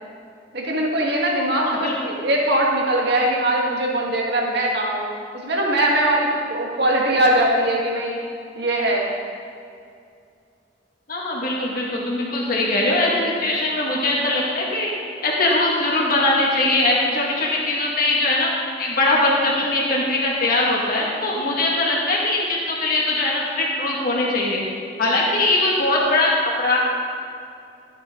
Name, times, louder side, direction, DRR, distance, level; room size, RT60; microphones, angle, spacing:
voice 1, 0.5-5.0 5.4-8.2 8.6-9.1, right 1 dB, 65° right, -2 dB, 1.8 m, -21 dB
voice 2, 1.6-1.9 11.1-14.9 15.2-18.5 18.8-24.6 25.0-26.8, left 2 dB, 55° left, -4 dB, 2.0 m, -21 dB
12.5 x 8.3 x 3.8 m, 2.4 s
head